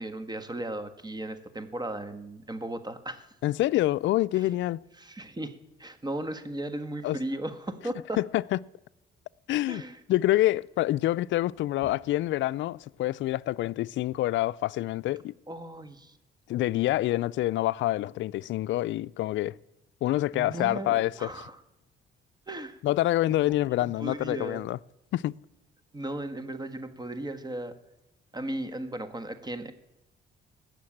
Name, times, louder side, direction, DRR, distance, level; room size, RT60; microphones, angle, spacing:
voice 1, 0.0-3.3 5.0-8.2 9.7-10.0 15.5-16.1 20.3-21.6 22.5-22.8 23.8-24.6 25.9-27.7 28.3-29.7, right 1 dB, 20° right, 1.5 m, -36 dB
voice 2, 3.4-4.8 7.0-7.2 8.2-8.6 9.5-9.8 10.1-15.3 16.5-19.5 20.0-21.4 22.8-24.8 25.1-25.3, left 15 dB, 70° left, 0.4 m, -27 dB
17.5 x 6.7 x 8.7 m
cardioid pair, 90°, 20 cm